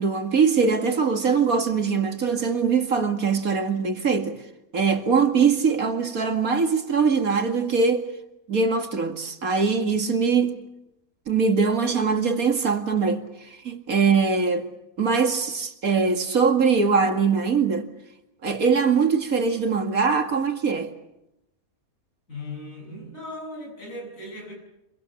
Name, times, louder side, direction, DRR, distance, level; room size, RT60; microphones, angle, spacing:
voice 1, 0.0-4.4 4.7-8.1 8.5-10.6 11.3-13.2 13.6-14.7 15.0-17.9 18.4-20.9, right 5 dB, 80° right, 2.5 m, -22 dB
voice 2, 22.3-24.6, left 1 dB, 65° left, 8.0 m, -37 dB
26.0 x 23.5 x 7.2 m
omnidirectional pair, 1.5 m